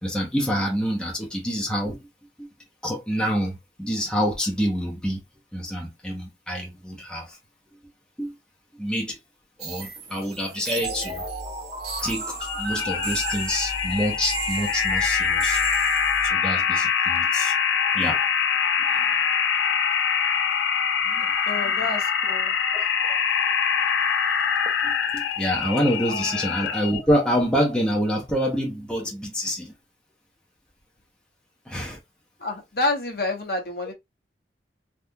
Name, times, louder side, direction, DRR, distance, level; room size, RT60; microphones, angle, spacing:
voice 1, 0.0-2.0 2.4-2.5 2.8-5.2 5.5-7.4 8.2-8.3 8.8-9.2 9.6-11.2 12.0-15.6 16.2-17.6 17.9-18.2 18.8-19.2 21.0-21.8 23.1-23.2 24.8-29.7 31.7-32.0, equal, 5° left, 0.7 m, -27 dB
sound 1, 9.6-16.2, right 5 dB, 65° right, 1.0 m, -37 dB
sound 2, 10.8-16.3, right 1 dB, 30° right, 1.2 m, -33 dB
sound 3, 12.4-27.0, left 7 dB, 90° left, 0.6 m, -24 dB
voice 2, 21.5-22.5 26.1-26.4 32.4-33.9, left 2 dB, 55° left, 1.0 m, -29 dB
3.5 x 2.3 x 2.7 m
head